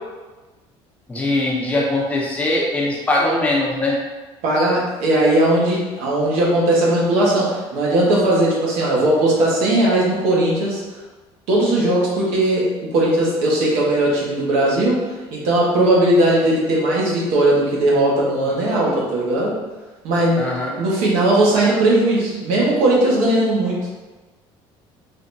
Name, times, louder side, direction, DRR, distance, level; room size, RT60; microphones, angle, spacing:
voice 1, 1.1-4.0 18.8-19.0 20.4-20.8, left 2 dB, 15° left, -4 dB, 0.5 m, -21 dB
voice 2, 4.4-10.8 11.5-15.0 15.3-19.6 20.0-20.4 20.8-23.9, right 1 dB, 75° right, -4 dB, 1.2 m, -18 dB
4.0 x 3.3 x 2.6 m, 1.2 s
cardioid pair, 175°, 11 cm